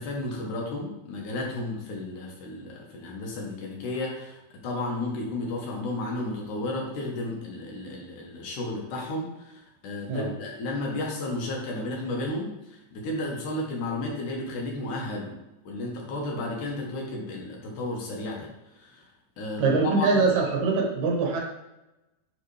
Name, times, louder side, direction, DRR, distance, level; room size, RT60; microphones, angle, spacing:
voice 1, 0.0-15.4 15.6-19.1 19.4-19.7 20.0-20.2, left 2 dB, 70° left, -1 dB, 2.6 m, -33 dB
voice 2, 19.6-21.4, right 4 dB, 70° right, 0 dB, 2.4 m, -23 dB
9.1 x 3.6 x 3.3 m, 0.95 s
omnidirectional pair, 3.8 m